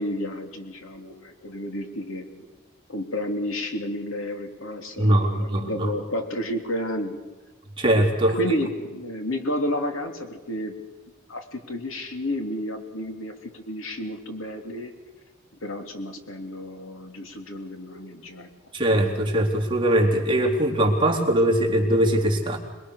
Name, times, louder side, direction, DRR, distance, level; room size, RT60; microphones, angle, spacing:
voice 1, 0.0-2.3 2.9-7.2 8.3-10.7 11.3-14.9 15.6-18.5, left 1 dB, 70° left, 5 dB, 3.1 m, -31 dB
voice 2, 5.0-5.9 7.8-8.4 18.7-22.6, right 1 dB, 25° right, 0 dB, 3.7 m, -21 dB
27.0 x 21.0 x 6.6 m, 1.2 s
head